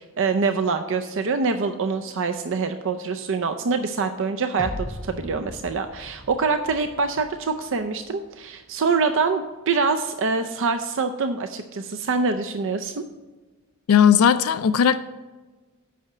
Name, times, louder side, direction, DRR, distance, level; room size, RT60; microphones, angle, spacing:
voice 1, 0.0-13.0, right 4 dB, 60° right, 8 dB, 0.5 m, -25 dB
sound 1, 4.6-7.9, left 1 dB, 5° left, 0.6 m, -38 dB
voice 2, 13.9-15.0, left 8 dB, 70° left, 12 dB, 0.4 m, -17 dB
8.4 x 5.7 x 5.9 m, 1.2 s
head